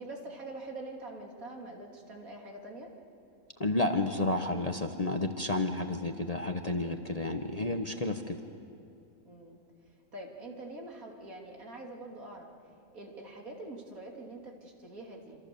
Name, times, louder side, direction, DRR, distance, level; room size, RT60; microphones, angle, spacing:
voice 1, 0.0-2.9 9.2-9.6 9.9-15.4, right 2 dB, 70° right, 0 dB, 3.4 m, -45 dB
voice 2, 3.6-8.4, left 2 dB, 30° left, 5 dB, 1.0 m, -31 dB
27.0 x 26.5 x 7.0 m, 2.5 s
omnidirectional pair, 1.6 m